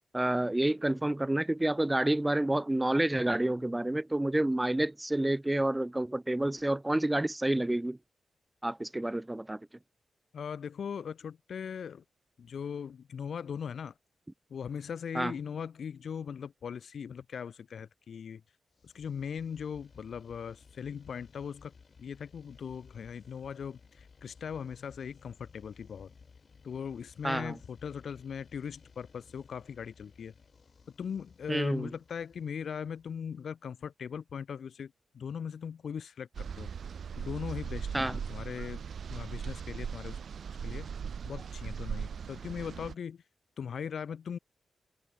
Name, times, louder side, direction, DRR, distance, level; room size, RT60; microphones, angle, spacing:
voice 1, 0.1-8.0 8.6-9.6 15.1-15.3 27.2-27.6 31.5-31.9 37.9-38.2, right 1 dB, 15° right, 0.9 m, -29 dB
voice 2, 10.3-12.0 12.4-13.9 14.5-18.4 18.8-21.7 22.0-26.1 26.6-30.3 30.9-36.7 37.2-38.8 39.1-40.2 40.6-40.9 41.3-43.2 43.6-44.4, left 7 dB, 75° left, 1.1 m, -39 dB
sound 1, 18.7-33.6, left 5 dB, 50° left, 6.9 m, -58 dB
sound 2, 36.3-42.9, right 7 dB, 70° right, 2.0 m, -39 dB
cardioid pair, 90°, 0 cm